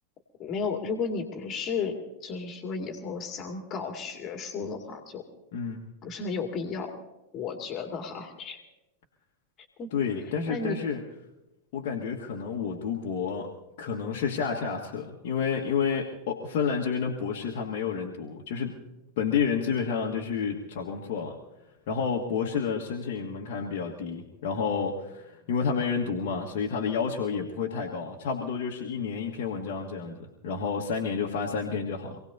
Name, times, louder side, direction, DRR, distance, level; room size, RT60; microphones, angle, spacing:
voice 1, 0.4-5.2 6.0-6.9 7.3-8.6 9.8-9.9 10.5-10.8, left 5 dB, 30° left, 3 dB, 2.4 m, -33 dB
voice 2, 5.5-5.8 9.9-11.0 11.7-13.5 13.8-18.8 19.2-21.4 21.9-32.2, left 6 dB, 50° left, -2 dB, 1.6 m, -30 dB
27.0 x 18.0 x 2.8 m, 0.97 s
figure-of-eight pair, 90°, 0 cm